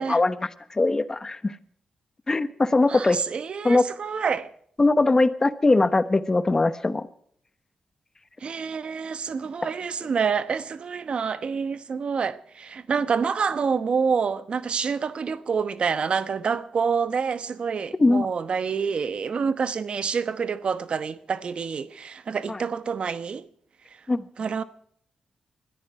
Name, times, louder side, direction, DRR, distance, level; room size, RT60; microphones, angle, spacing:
voice 1, 0.0-1.5 2.3-3.2 3.6-3.8 4.8-7.1 9.6-9.7 18.0-18.3 22.5-22.6 24.1-24.2, left 2 dB, 25° left, 1.1 m, -21 dB
voice 2, 2.9-4.5 8.4-23.5 24.4-24.6, right 6 dB, 55° right, 1.1 m, -27 dB
21.5 x 13.5 x 4.7 m
cardioid pair, 80°, 2 cm